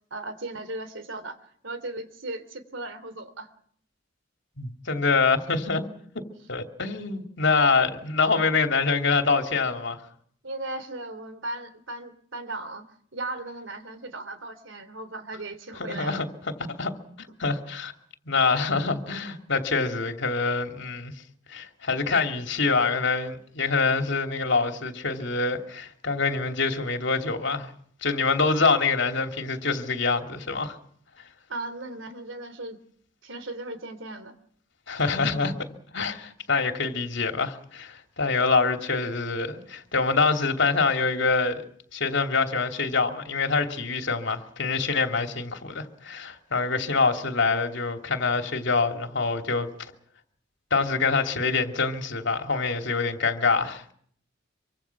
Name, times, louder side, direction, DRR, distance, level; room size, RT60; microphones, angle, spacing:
voice 1, 0.1-1.4 1.6-3.5 10.4-12.8 13.1-16.2 31.5-32.8 33.2-34.3, right 2 dB, 80° right, 3.2 m, -36 dB
voice 2, 4.6-5.8 6.5-10.0 15.8-16.3 16.7-16.9 17.2-17.9 18.3-21.1 21.5-27.7 28.0-30.8 34.9-35.5 35.9-41.6 41.9-49.7 50.7-53.8, left 4 dB, 65° left, 2.8 m, -25 dB
26.0 x 24.5 x 6.0 m
head